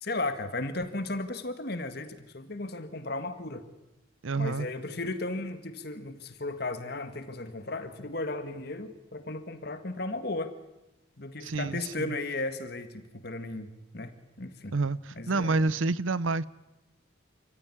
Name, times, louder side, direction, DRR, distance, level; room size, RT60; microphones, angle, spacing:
voice 1, 0.0-3.7 4.4-10.6 11.2-14.8 15.1-15.6, left 2 dB, 50° left, 1.8 m, -35 dB
voice 2, 4.2-4.7 11.4-12.1 14.7-16.5, right 3 dB, 80° right, 0.7 m, -28 dB
27.5 x 15.0 x 9.9 m
head